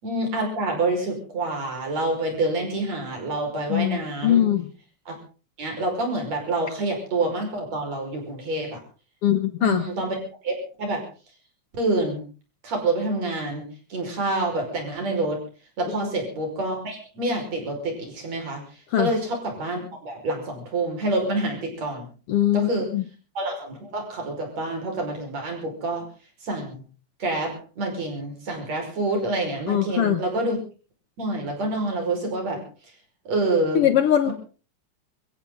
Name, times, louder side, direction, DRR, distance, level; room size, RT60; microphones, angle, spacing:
voice 1, 0.0-4.5 5.1-5.2 5.6-8.8 9.6-10.2 10.4-11.0 11.8-12.2 12.6-13.6 13.9-15.4 15.8-22.1 22.5-22.9 23.3-26.0 26.4-26.8 27.2-30.6 31.2-32.6 33.2-33.9 34.2-34.3, right 2 dB, 60° right, 2 dB, 6.5 m, -27 dB
voice 2, 3.7-4.7 9.2-9.8 18.9-19.1 22.3-23.0 29.7-30.2 33.7-34.3, left 11 dB, 65° left, 10 dB, 1.6 m, -21 dB
24.0 x 15.5 x 3.9 m, 0.37 s
omnidirectional pair, 3.4 m